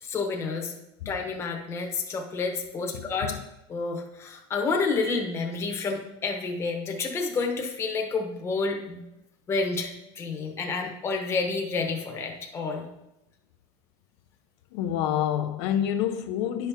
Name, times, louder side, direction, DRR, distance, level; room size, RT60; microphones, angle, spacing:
voice 1, 0.0-0.7 1.0-3.3 3.7-9.0 9.5-12.9, left 4 dB, 20° left, 0.9 m, -29 dB
voice 2, 2.9-3.4 14.7-16.7, left 10 dB, 70° left, 0.5 m, -28 dB
10.5 x 5.7 x 3.5 m
cardioid pair, 180°, 15 cm